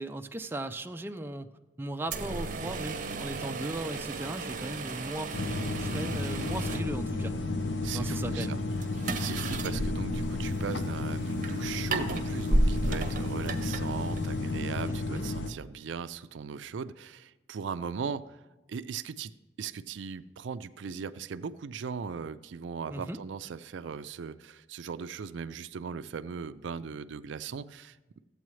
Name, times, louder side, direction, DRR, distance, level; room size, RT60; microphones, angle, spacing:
voice 1, 0.0-1.5 1.8-7.3 7.9-8.5 14.9-15.2 22.9-23.2, right 1 dB, 10° right, 5 dB, 0.4 m, -37 dB
sound 1, 2.0-14.6, right 2 dB, 45° right, 0.7 m, -34 dB
sound 2, 5.3-15.5, left 2 dB, 70° left, 0.6 m, -32 dB
voice 2, 7.8-8.6 9.2-18.2 18.7-19.3 19.6-28.0, right 6 dB, 75° right, 13 dB, 0.4 m, -38 dB
13.5 x 8.3 x 3.1 m, 1.1 s
head